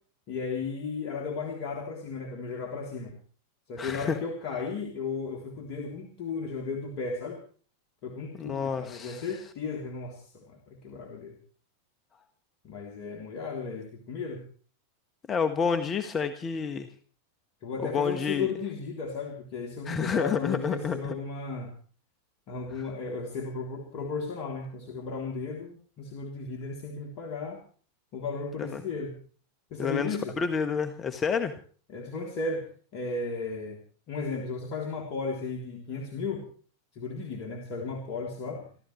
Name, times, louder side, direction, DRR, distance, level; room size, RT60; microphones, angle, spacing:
voice 1, 0.3-3.1 3.7-7.4 8.0-11.3 12.6-14.4 17.6-21.7 22.5-27.6 28.1-29.1 29.7-30.3 31.9-33.8 34.1-36.5 36.9-38.7, left 4 dB, 50° left, 1 dB, 3.4 m, -35 dB
voice 2, 3.8-4.2 8.3-9.3 15.3-16.9 17.8-18.5 19.8-21.2 22.8-22.9 28.6-28.8 29.8-31.6, left 6 dB, 25° left, 9 dB, 1.5 m, -29 dB
29.0 x 13.0 x 3.2 m, 0.42 s
hypercardioid pair, 95°, 0 cm